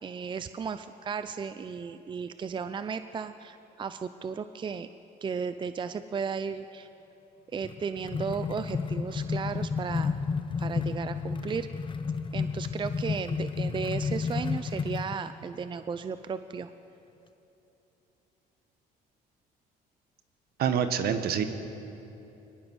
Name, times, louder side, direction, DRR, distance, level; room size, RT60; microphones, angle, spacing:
voice 1, 0.0-4.9 5.2-6.9 7.5-10.1 10.6-11.7 12.3-16.7, right 6 dB, 30° right, 11 dB, 0.6 m, -35 dB
sound 1, 7.6-15.2, left 5 dB, 30° left, 0.8 m, -31 dB
voice 2, 20.6-21.4, right 8 dB, 65° right, 8 dB, 1.6 m, -26 dB
23.0 x 19.5 x 6.4 m, 3.0 s
cardioid pair, 110°, 17 cm